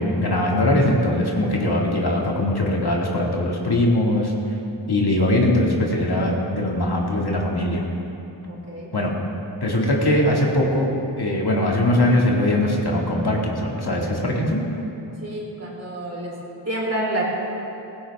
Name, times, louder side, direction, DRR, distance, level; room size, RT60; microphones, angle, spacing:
voice 1, 0.0-4.3 4.9-7.8 8.9-9.1 9.6-10.9 11.2-14.6, left 1 dB, 60° left, -2 dB, 2.1 m, -21 dB
voice 2, 8.5-8.9 15.2-17.2, right 1 dB, 35° right, -3 dB, 3.4 m, -29 dB
16.0 x 15.5 x 3.5 m, 2.8 s
cardioid pair, 50°, 44 cm